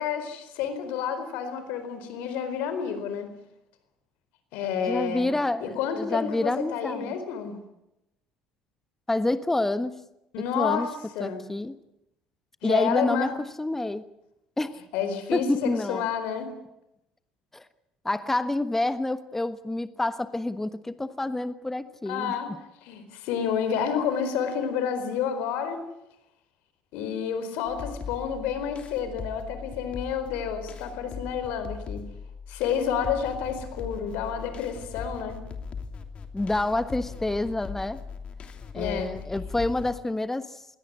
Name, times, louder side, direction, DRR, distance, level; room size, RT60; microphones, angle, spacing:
voice 1, 0.0-3.3 4.5-5.3 5.6-7.6 10.3-10.9 11.1-11.4 12.6-13.3 14.9-16.5 22.1-22.5 22.8-25.8 26.9-32.0 32.5-35.4 38.7-39.1, left 7 dB, 75° left, 10 dB, 4.5 m, -29 dB
voice 2, 4.9-7.1 9.1-10.0 10.4-10.9 11.2-11.8 12.6-14.0 14.6-14.8 15.3-16.1 17.5-17.7 18.0-22.3 36.3-38.0 38.7-40.7, left 2 dB, 10° left, 13 dB, 1.3 m, -28 dB
sound 1, 27.7-40.0, left 5 dB, 45° left, 3.1 m, -39 dB
21.5 x 17.5 x 9.7 m, 0.84 s
hypercardioid pair, 70°, 3 cm